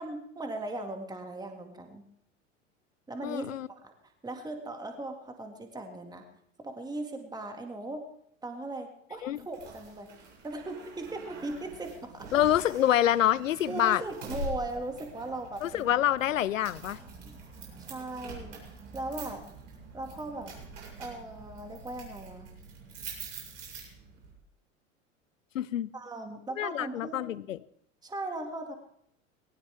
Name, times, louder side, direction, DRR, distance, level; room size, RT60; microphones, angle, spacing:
voice 1, 0.0-2.0 3.1-3.9 4.2-6.3 6.6-8.1 8.4-10.1 10.4-12.3 13.7-15.9 16.9-17.4 17.8-19.4 19.9-20.5 21.0-22.5 25.9-27.2 28.0-28.7, right 2 dB, 10° right, 4 dB, 2.0 m, -38 dB
voice 2, 3.2-3.7 9.2-9.4 12.3-14.0 15.6-17.0 25.5-25.9 26.6-27.6, left 11 dB, 80° left, 21 dB, 0.6 m, -26 dB
sound 1, 9.4-24.3, right 2 dB, 70° right, 7.5 m, -45 dB
20.0 x 19.0 x 3.5 m, 0.73 s
figure-of-eight pair, 80°, 38 cm